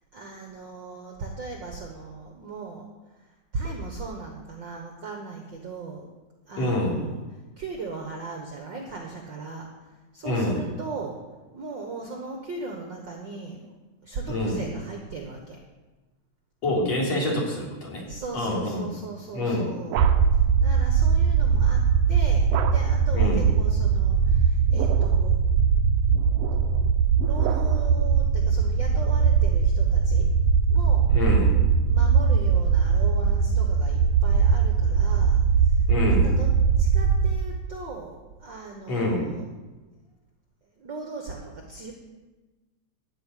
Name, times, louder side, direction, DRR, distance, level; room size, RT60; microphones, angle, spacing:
voice 1, 0.1-2.8 3.5-6.1 6.5-7.2 7.6-9.7 10.1-11.2 11.5-13.7 14.0-15.6 18.0-20.0 20.6-21.8 22.1-25.4 27.2-30.3 30.7-31.1 31.8-36.5 36.8-39.5 40.8-41.9, right 4 dB, 50° right, 1 dB, 1.6 m, -38 dB
voice 2, 6.6-7.0 10.2-10.6 14.3-14.6 16.6-18.0 18.3-18.8 19.3-19.7 23.1-23.4 31.1-31.5 35.9-36.3 38.9-39.3, left 1 dB, 60° left, -4 dB, 4.5 m, -26 dB
sound 1, 19.3-20.5 22.5-23.1 24.5-25.3 26.1-28.0, right 9 dB, 70° right, 1.7 m, -35 dB
sound 2, 20.0-37.3, right 6 dB, 90° right, 2.2 m, -21 dB
13.0 x 5.8 x 9.1 m, 1.2 s
omnidirectional pair, 3.3 m